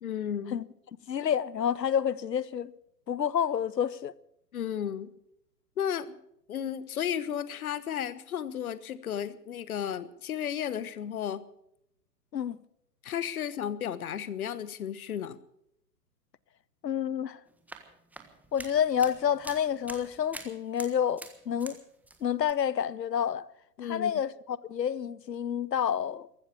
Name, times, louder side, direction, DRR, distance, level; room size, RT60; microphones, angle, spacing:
voice 1, 0.0-0.6 4.5-5.1 5.8-6.2 6.5-11.4 13.0-15.4 23.8-24.1, left 9 dB, 60° left, 1.3 m, -33 dB
voice 2, 1.1-2.7 3.1-4.1 12.3-12.6 16.8-17.4 18.5-21.8 22.2-23.5 23.8-26.3, left 8 dB, 80° left, 0.8 m, -29 dB
sound 1, 17.5-21.8 22.0-22.5, right 2 dB, 5° right, 1.4 m, -46 dB
15.0 x 13.0 x 7.2 m
figure-of-eight pair, 120°, 49 cm